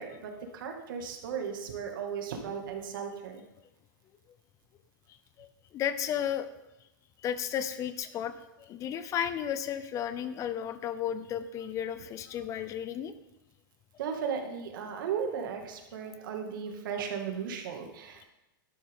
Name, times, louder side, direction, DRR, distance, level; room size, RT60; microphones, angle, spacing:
voice 1, 0.0-3.4 14.0-18.3, right 7 dB, 70° right, 3 dB, 2.3 m, -36 dB
voice 2, 5.7-6.5 7.2-8.3 8.6-13.1, left 9 dB, 30° left, 13 dB, 0.6 m, -33 dB
12.0 x 11.5 x 3.8 m, 0.95 s
supercardioid pair, 140°, 11 cm